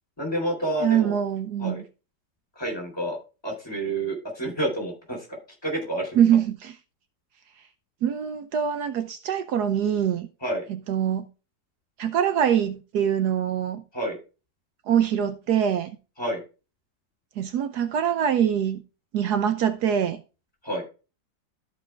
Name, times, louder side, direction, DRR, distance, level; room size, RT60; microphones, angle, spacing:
voice 1, 0.2-1.2 1.6-1.8 2.6-3.2 3.4-6.2 10.4-10.6 13.9-14.2 16.2-16.4 20.6-20.8, right 1 dB, 15° left, 3.8 m, -29 dB
voice 2, 0.8-1.8 6.2-6.8 8.0-10.3 10.7-11.3 12.0-13.8 14.9-15.9 17.4-18.8 19.1-20.2, right 9 dB, 70° right, 1.2 m, -24 dB
13.5 x 4.9 x 3.3 m
omnidirectional pair, 1.8 m